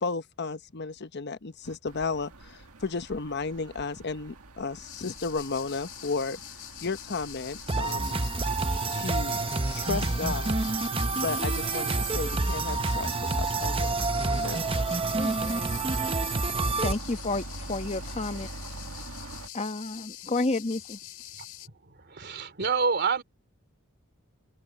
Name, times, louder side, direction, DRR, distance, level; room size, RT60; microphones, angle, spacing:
voice 1, 0.0-6.4 6.8-8.2 8.9-9.4 9.7-10.6 11.1-14.6, left 4 dB, 50° left, 0.9 m, -34 dB
sound 1, 1.6-19.5, right 2 dB, 85° right, 1.9 m, -44 dB
sound 2, 4.7-21.7, left 13 dB, 80° left, 6.7 m, -45 dB
sound 3, 7.7-16.9, right 3 dB, 25° right, 0.8 m, -28 dB
voice 2, 15.1-15.7 16.8-18.5 19.5-21.0, left 2 dB, 30° left, 1.1 m, -31 dB
voice 3, 22.1-23.2, right 5 dB, 50° right, 3.3 m, -27 dB
head